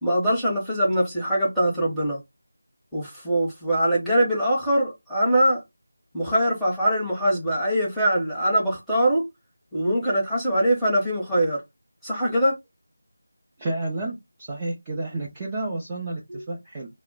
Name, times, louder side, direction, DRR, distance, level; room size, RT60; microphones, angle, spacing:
voice 1, 0.0-2.2 2.9-5.6 6.1-9.2 9.7-11.6 12.0-12.5 16.3-16.4, right 1 dB, ahead, 0.8 m, -22 dB
voice 2, 13.6-16.9, right 2 dB, 15° right, 0.5 m, -31 dB
2.1 x 2.1 x 3.8 m
figure-of-eight pair, 170°, 0 cm